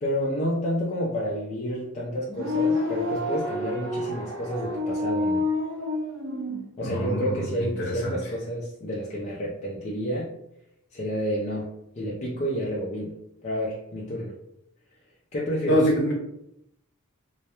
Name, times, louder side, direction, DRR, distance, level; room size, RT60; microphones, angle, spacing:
voice 1, 0.0-5.5 6.8-10.3 10.9-14.3 15.3-15.8, equal, 30° left, -6 dB, 0.4 m, -30 dB
sound 1, 2.3-6.6, left 2 dB, 65° right, 0.7 m, -28 dB
voice 2, 6.8-8.1 15.7-16.1, equal, 55° left, -2 dB, 0.8 m, -25 dB
2.2 x 2.1 x 2.9 m, 0.79 s
head